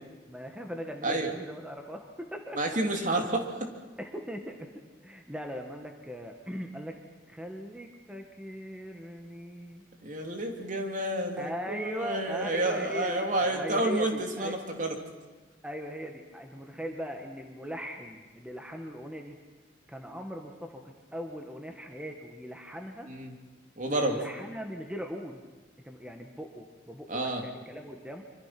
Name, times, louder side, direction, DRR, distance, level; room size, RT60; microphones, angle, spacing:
voice 1, 0.3-2.6 4.0-4.7 5.0-7.0 7.3-9.8 11.4-14.6 15.6-19.4 19.9-20.8 21.1-23.1 24.0-25.4 25.8-28.2, equal, 5° right, 3 dB, 1.6 m, -39 dB
voice 2, 1.0-1.3 2.6-3.7 10.0-14.9 23.1-23.3 23.8-24.2 27.1-27.4, right 1 dB, 45° right, 3 dB, 3.0 m, -30 dB
25.5 x 25.5 x 6.0 m, 1.3 s
head